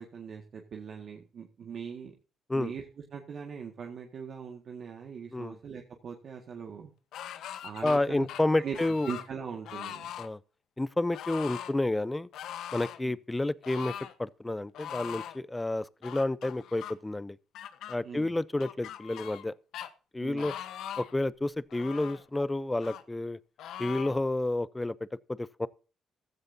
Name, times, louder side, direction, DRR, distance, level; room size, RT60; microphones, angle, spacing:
voice 1, 0.0-2.1 2.5-2.8 3.1-6.9 7.6-8.3 8.6-8.8 9.1-10.1 13.0-13.1 18.0-18.3 20.2-20.5, right 6 dB, 55° right, 1.8 m, -40 dB
sound 1, 7.1-8.0 8.3-9.3 9.6-10.3 11.1-11.7 12.3-13.0 13.6-14.1 14.7-15.4 16.0-16.9 17.5-18.0 18.6-19.5 19.7-19.9 20.4-21.2 21.7-22.2 22.8-23.0 23.6-24.2, left 10 dB, 80° left, 1.1 m, -41 dB
voice 2, 7.8-9.1 10.2-10.4 10.8-12.3 12.7-17.4 17.9-19.5 20.1-20.5 21.0-23.4 23.8-25.7, left 2 dB, 15° left, 0.7 m, -30 dB
15.5 x 13.0 x 2.8 m
cardioid pair, 90°, 0 cm